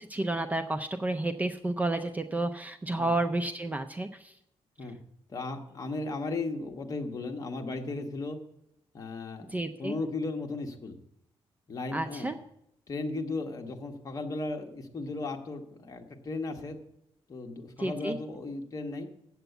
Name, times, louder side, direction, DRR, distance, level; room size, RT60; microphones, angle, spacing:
voice 1, 0.1-4.3 9.5-9.9 11.9-12.4 17.8-18.2, right 2 dB, 15° right, 9 dB, 0.5 m, -31 dB
voice 2, 5.3-8.4 8.9-11.0 11.7-12.3 12.9-16.8 17.3-19.1, left 3 dB, 35° left, 4 dB, 1.2 m, -36 dB
8.0 x 8.0 x 8.0 m, 0.78 s
wide cardioid pair, 145°, 10 cm